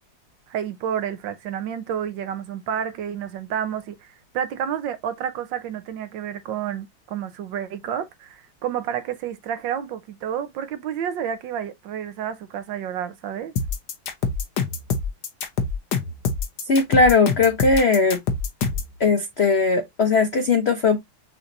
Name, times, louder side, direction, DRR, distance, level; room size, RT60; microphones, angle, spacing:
voice 1, 0.5-4.1 4.3-13.5, right 9 dB, 75° right, 1.5 m, -30 dB
sound 1, 13.6-18.9, left 5 dB, 60° left, 1.4 m, -25 dB
voice 2, 16.7-18.2 19.0-21.0, left 4 dB, 80° left, 0.5 m, -19 dB
6.6 x 3.0 x 2.6 m
omnidirectional pair, 2.1 m